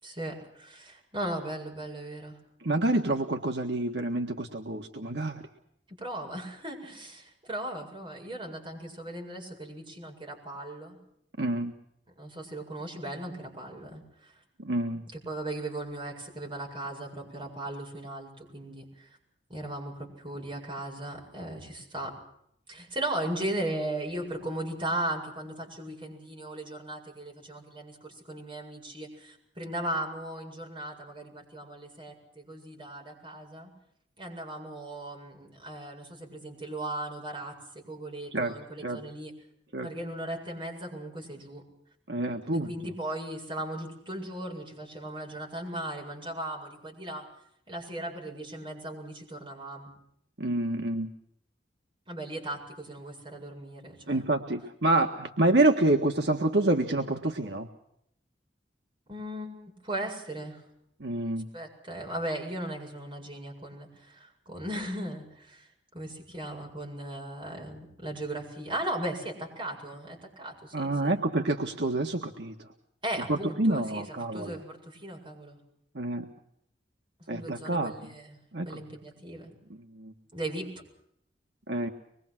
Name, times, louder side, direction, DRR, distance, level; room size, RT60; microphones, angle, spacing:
voice 1, 0.0-2.4 5.9-11.0 12.2-14.4 15.1-19.2 19.5-22.2 22.7-33.7 34.2-39.3 39.8-41.6 42.4-47.2 47.7-49.9 52.1-54.3 59.1-60.6 61.5-71.2 73.0-75.6 77.2-79.5 80.3-80.7, right 1 dB, 25° right, 1 dB, 7.7 m, -37 dB
voice 2, 2.6-5.4 11.4-11.7 14.6-15.0 38.3-38.5 38.8-39.0 39.7-39.9 42.1-42.7 50.4-51.1 54.1-57.7 61.0-61.5 70.7-72.5 73.3-74.6 76.0-76.3 77.3-77.9 78.5-78.7 80.0-80.1 81.7-81.9, right 2 dB, 70° right, 3 dB, 1.7 m, -27 dB
25.0 x 22.5 x 6.1 m, 0.73 s
head